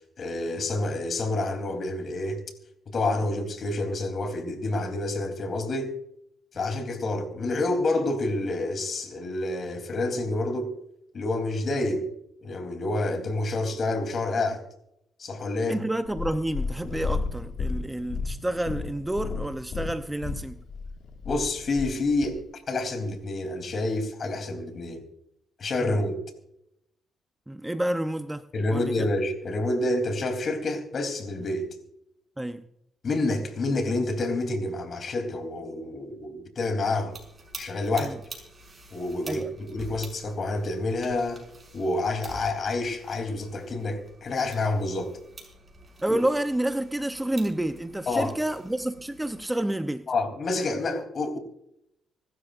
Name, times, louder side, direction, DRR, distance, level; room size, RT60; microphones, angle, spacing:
voice 1, 0.2-2.4 2.9-5.9 6.5-10.7 11.1-12.1 12.4-14.6 15.2-15.8 21.2-25.0 25.6-26.2 28.5-31.7 33.0-37.2 37.5-38.2 38.9-41.4 41.7-45.1 46.1-46.2 48.1-48.3 50.1-51.4, left 2 dB, 50° left, 3.3 m, -28 dB
voice 2, 15.7-20.6 25.8-26.0 27.5-28.4 28.7-28.9 32.4-32.6 38.0-38.2 39.3-39.5 46.0-50.1, right 1 dB, 10° right, 0.7 m, -29 dB
Purr, 16.0-22.4 23.1-23.2, left 4 dB, 70° left, 2.0 m, -33 dB
sound 1, 37.1-49.5, right 2 dB, 30° right, 5.9 m, -47 dB
25.5 x 13.0 x 2.6 m
cardioid pair, 90°, 0 cm